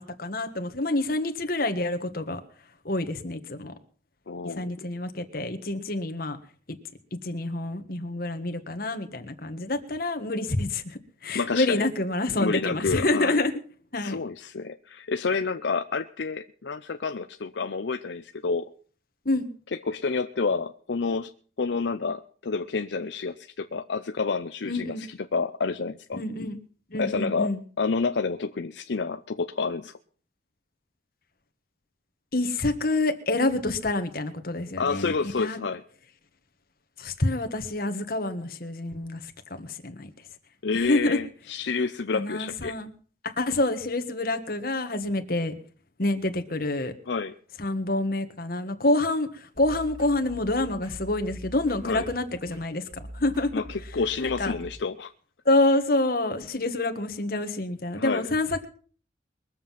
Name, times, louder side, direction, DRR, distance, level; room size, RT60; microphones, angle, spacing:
voice 1, 0.0-2.4 2.8-3.7 4.4-6.4 7.2-13.5 13.9-14.2 19.2-19.5 24.6-25.1 26.1-26.6 26.9-27.6 32.3-35.6 37.0-39.3 39.6-40.1 40.7-41.2 42.1-42.9 43.2-45.5 46.0-46.9 47.6-53.5 54.2-54.5 55.4-58.6, left 2 dB, 55° left, 7 dB, 1.6 m, -27 dB
voice 2, 4.3-4.7 11.3-11.8 12.4-13.4 14.0-18.7 19.7-21.3 21.6-26.2 27.0-27.5 27.8-29.9 34.8-35.8 40.6-42.8 47.1-47.3 51.8-52.1 53.5-55.1 57.9-58.3, left 4 dB, 80° left, 8 dB, 0.6 m, -29 dB
sound 1, 49.3-54.7, right 1 dB, 25° right, 5.1 m, -43 dB
22.5 x 7.5 x 5.9 m, 0.42 s
head